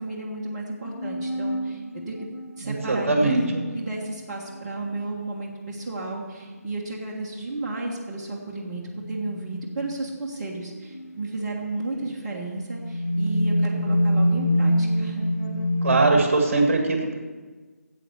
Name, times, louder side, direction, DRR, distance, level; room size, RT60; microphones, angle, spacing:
voice 1, 0.0-2.3 2.6-15.3, right 2 dB, 30° right, -4 dB, 1.5 m, -33 dB
sound 1, 0.8-4.7 7.1-7.2 7.9-8.0 8.8-9.8 10.7-11.1 11.8-16.2, equal, 85° left, 1.1 m, -26 dB
voice 2, 2.6-3.4 15.8-17.1, right 2 dB, 50° right, 3 dB, 1.8 m, -21 dB
9.8 x 7.9 x 7.0 m, 1.4 s
figure-of-eight pair, 155°, 9 cm